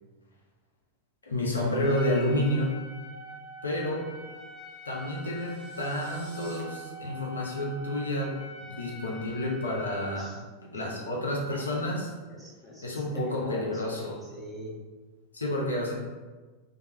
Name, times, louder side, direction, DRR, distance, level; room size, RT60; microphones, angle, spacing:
voice 1, 1.3-2.8 3.6-4.1 4.8-10.3 10.7-12.1 12.8-14.2 15.3-15.9, left 1 dB, 75° left, -2 dB, 0.5 m, -30 dB
Trumpet, 1.8-10.2, left 1 dB, 15° left, 1.2 m, -45 dB
sound 1, 4.7-6.6, right 1 dB, 30° right, 0.9 m, -55 dB
voice 2, 10.7-11.2 12.3-14.0 14.3-14.8, equal, 5° right, -4 dB, 0.6 m, -44 dB
2.2 x 2.0 x 3.0 m, 1.3 s
figure-of-eight pair, 90°, 0 cm